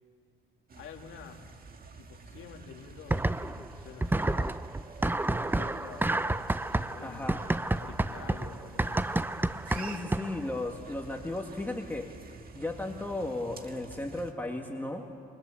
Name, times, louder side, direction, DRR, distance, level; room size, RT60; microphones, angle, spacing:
sound 1, 0.7-14.3, right 4 dB, 50° right, 1.8 m, -49 dB
voice 1, 0.8-1.7 2.0-4.6 5.2-6.4 6.9-7.4 7.8-9.3, left 7 dB, 80° left, 3 dB, 2.2 m, -49 dB
sound 2, 3.1-3.7 4.0-10.5, right 2 dB, 10° right, 0.6 m, -30 dB
voice 2, 7.0-7.4 9.7-12.1 12.5-15.1, left 2 dB, 10° left, 1 dB, 1.9 m, -35 dB
29.0 x 20.5 x 7.2 m, 2.3 s
cardioid pair, 90°, 20 cm